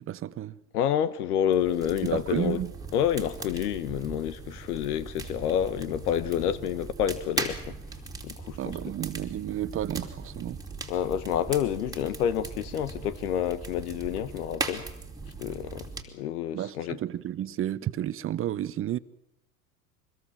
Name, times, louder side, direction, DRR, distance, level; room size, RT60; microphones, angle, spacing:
voice 1, 0.0-0.6 2.0-2.7 8.6-10.6 16.5-19.0, right 12 dB, 30° right, 0.9 m, -31 dB
voice 2, 0.7-2.6 2.9-7.8 8.2-8.8 10.9-14.9 15.4-17.0, left 9 dB, 75° left, 1.4 m, -28 dB
sound 1, 1.5-16.0, right 3 dB, 10° right, 3.3 m, -39 dB
25.0 x 20.5 x 7.4 m
hypercardioid pair, 105°, 46 cm